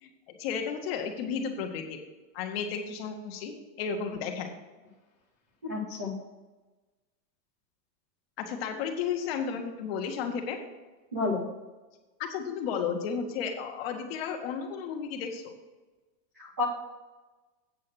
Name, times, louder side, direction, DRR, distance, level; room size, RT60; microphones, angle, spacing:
voice 1, 0.0-2.0 2.3-4.5 8.4-10.6 12.2-15.5, left 6 dB, 35° left, 4 dB, 1.4 m, -33 dB
voice 2, 5.6-6.1 11.1-11.4 16.4-16.6, left 3 dB, 10° right, -8 dB, 0.4 m, -30 dB
8.5 x 6.2 x 6.2 m, 1.2 s
supercardioid pair, 165°, 49 cm